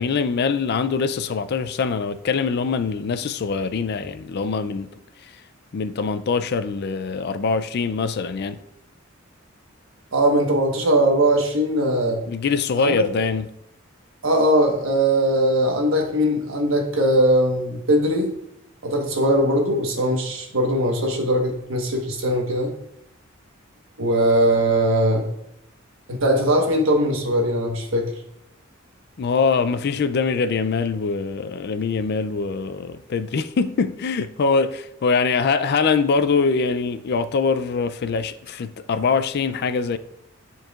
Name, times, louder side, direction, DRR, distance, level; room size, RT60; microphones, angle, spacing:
voice 1, 0.0-4.9 5.7-8.6 12.3-13.5 29.2-40.0, left 4 dB, 55° left, 0.4 m, -23 dB
voice 2, 10.1-12.2 12.8-13.0 14.2-18.3 18.8-22.7 24.0-25.3 26.1-28.1, right 1 dB, 75° right, 1.3 m, -20 dB
10.0 x 4.7 x 2.4 m
head